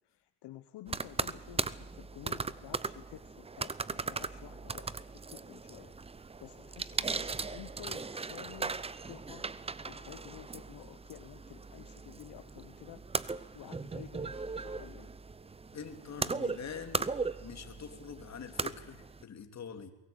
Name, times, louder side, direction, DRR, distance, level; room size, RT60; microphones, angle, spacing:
voice 1, 0.0-8.8 9.1-9.5 9.8-13.0 13.4-15.2, left 14 dB, 60° left, 11 dB, 1.1 m, -51 dB
sound 1, 0.9-19.2, right 4 dB, 15° right, 0.7 m, -38 dB
voice 2, 15.7-17.1 17.4-19.9, left 6 dB, 35° left, 7 dB, 2.9 m, -45 dB
22.5 x 18.5 x 8.8 m, 0.98 s
cardioid pair, 105°, 45 cm